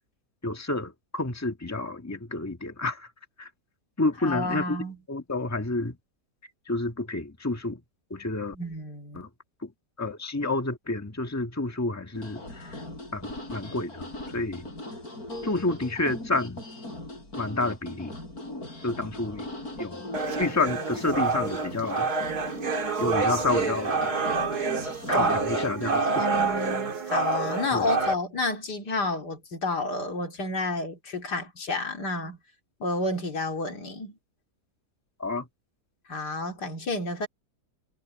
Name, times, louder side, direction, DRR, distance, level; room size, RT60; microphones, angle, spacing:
voice 1, 0.4-3.1 3.4-3.5 4.0-4.8 5.1-5.9 6.7-7.8 8.1-8.5 9.1-9.3 9.6-9.7 10.0-12.8 13.1-14.1 14.3-14.7 15.4-16.6 17.4-18.1 18.8-19.5 19.8-20.0 20.4-22.1 23.0-24.1 25.1-26.3 27.7-27.9 35.2-35.5, left 2 dB, 10° left, 1.6 m, -29 dB
voice 2, 4.2-5.0 8.5-9.2 25.1-25.4 26.2-32.4 32.8-34.2 36.1-37.3, left 2 dB, 85° left, 3.2 m, -30 dB
sound 1, 12.1-26.8, left 1 dB, 65° left, 8.7 m, -40 dB
sound 2, 20.1-28.1, right 4 dB, 70° right, 2.5 m, -27 dB
omnidirectional pair, 1.7 m